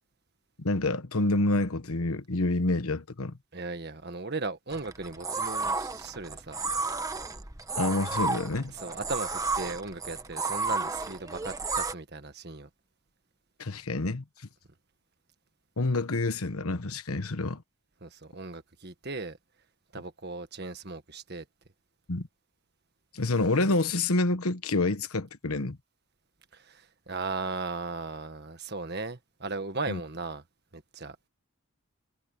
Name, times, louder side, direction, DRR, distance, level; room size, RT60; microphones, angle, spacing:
voice 1, 0.6-3.4 7.8-8.7 13.6-14.2 15.8-17.6 22.1-22.3 23.1-25.8 29.9-30.0, left 2 dB, 75° left, 1.2 m, -28 dB
voice 2, 3.5-6.6 8.8-12.7 18.0-19.4 19.9-21.4 26.5-30.4 30.7-31.1, right 3 dB, 45° right, 1.6 m, -37 dB
sound 1, 4.7-11.9, right 3 dB, 15° right, 1.1 m, -32 dB
head